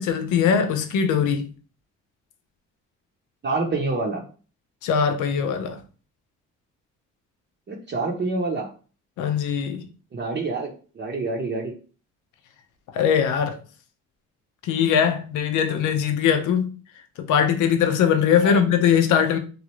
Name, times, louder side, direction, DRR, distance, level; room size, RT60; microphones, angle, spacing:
voice 1, 0.0-1.5 4.8-5.8 9.2-9.8 12.9-13.6 14.6-16.7 17.2-19.4, left 7 dB, 85° left, 0.6 m, -21 dB
voice 2, 3.4-4.2 7.7-8.7 10.1-11.7 18.4-18.6, right 3 dB, 35° right, 0.7 m, -27 dB
3.0 x 2.5 x 3.0 m
cardioid pair, 90°, 30 cm